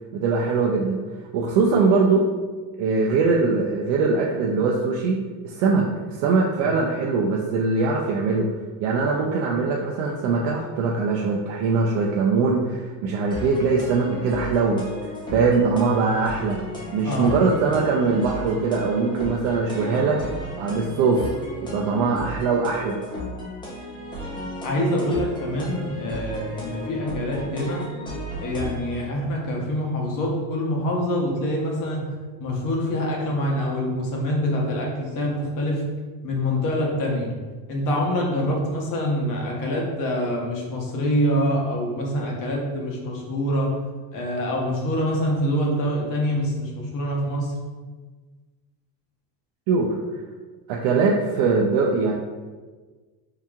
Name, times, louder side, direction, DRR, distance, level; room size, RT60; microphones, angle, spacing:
voice 1, 0.1-1.0 1.3-2.2 2.8-8.5 8.8-16.6 16.9-20.2 20.6-21.2 21.7-23.0 49.7-49.9 50.7-52.1, right 4 dB, 75° right, -2 dB, 0.6 m, -22 dB
sound 1, 13.3-29.0, equal, 10° left, 0.5 m, -35 dB
voice 2, 17.0-17.4 19.9-20.2 24.6-27.8 28.4-32.1 32.4-35.9 36.2-37.3 37.7-43.8 44.1-47.5, equal, 45° left, -1 dB, 0.9 m, -25 dB
4.7 x 2.8 x 2.3 m, 1.4 s
cardioid pair, 155°, 44 cm